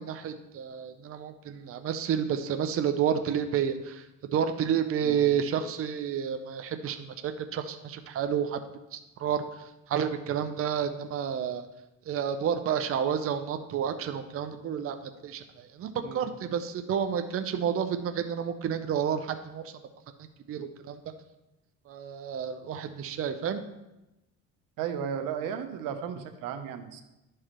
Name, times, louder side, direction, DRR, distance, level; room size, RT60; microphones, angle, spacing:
voice 1, 0.0-8.6 8.9-11.6 12.1-19.7 20.5-21.0 21.9-23.6, right 8 dB, 45° right, 8 dB, 0.6 m, -30 dB
voice 2, 24.8-27.0, right 8 dB, 80° right, 7 dB, 0.8 m, -34 dB
11.0 x 4.7 x 3.0 m, 0.94 s
cardioid pair, 90°, 32 cm